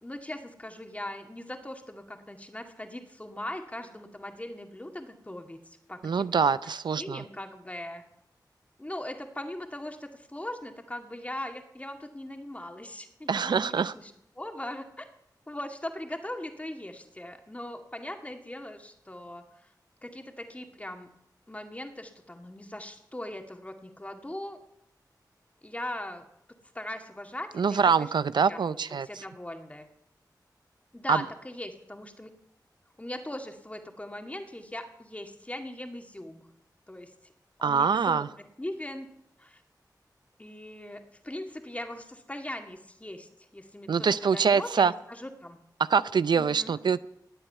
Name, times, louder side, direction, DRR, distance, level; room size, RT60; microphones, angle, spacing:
voice 1, 0.0-6.5 7.0-8.0 8.8-15.1 15.5-19.4 20.0-21.1 21.5-24.6 25.6-26.3 26.7-28.1 28.3-29.9 30.9-32.3 33.0-36.5 36.9-37.1 37.6-38.2 38.6-39.1 39.4-39.6 40.4-43.3 43.5-45.6 46.4-46.7, left 1 dB, 20° left, 5 dB, 2.2 m, -40 dB
voice 2, 6.0-7.2 13.3-13.9 27.6-29.1 31.1-31.2 37.6-38.3 43.9-44.9 45.9-47.1, right 6 dB, 85° right, 16 dB, 0.5 m, -24 dB
19.0 x 8.0 x 9.3 m, 0.80 s
wide cardioid pair, 80°, 7 cm